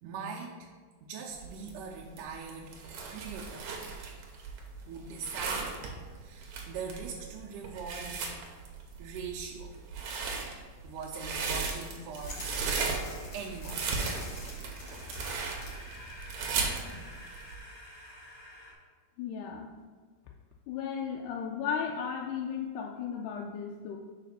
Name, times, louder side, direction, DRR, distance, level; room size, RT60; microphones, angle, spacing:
voice 1, 0.0-0.7 1.0-2.8 3.1-3.7 4.9-5.8 6.2-8.2 9.0-9.8 10.8-13.0 13.3-13.9, right 5 dB, 85° right, -3 dB, 2.2 m, -41 dB
sound 1, 1.3-17.6, right 4 dB, 70° right, 2.0 m, -36 dB
sound 2, 12.1-17.2, left 2 dB, 50° left, 2.1 m, -46 dB
sound 3, 12.9-18.7, equal, 35° left, 1.8 m, -50 dB
voice 2, 19.2-19.7 20.7-24.0, left 7 dB, 80° left, 0 dB, 2.0 m, -35 dB
5.0 x 4.8 x 5.7 m, 1.5 s
omnidirectional pair, 3.7 m